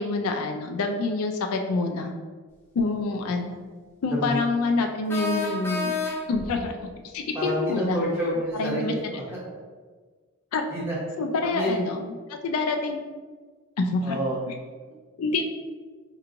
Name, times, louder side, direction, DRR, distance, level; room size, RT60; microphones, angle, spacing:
voice 1, 0.0-2.1 2.7-3.6 4.0-6.0 6.3-6.7 7.1-8.0 8.6-8.9 10.5-10.6 11.2-12.0 12.3-13.0 13.8-14.2 15.2-15.4, left 3 dB, 80° left, 4 dB, 0.4 m, -26 dB
sound 1, 2.8-2.9 5.1-6.5, left 4 dB, 10° left, 0.5 m, -29 dB
voice 2, 4.1-4.5 7.3-9.4 10.7-11.0 11.4-11.8 14.0-14.4, equal, 10° right, -6 dB, 0.9 m, -29 dB
4.5 x 3.0 x 2.5 m, 1.4 s
head